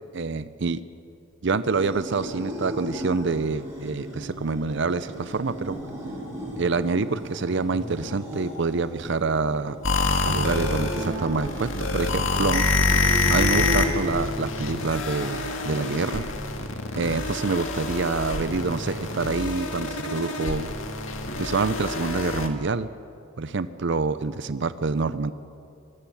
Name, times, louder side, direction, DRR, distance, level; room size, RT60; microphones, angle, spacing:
voice 1, 0.1-0.8 1.4-5.8 6.6-9.8 10.2-12.6 13.3-16.2 16.9-20.7 21.4-22.9 23.4-25.3, right 4 dB, 60° right, 13 dB, 0.6 m, -26 dB
sound 1, 1.6-13.9, equal, 15° right, 7.6 m, -36 dB
sound 2, 9.8-22.5, left 3 dB, 70° left, 2.0 m, -26 dB
23.5 x 20.0 x 7.2 m, 2.6 s
head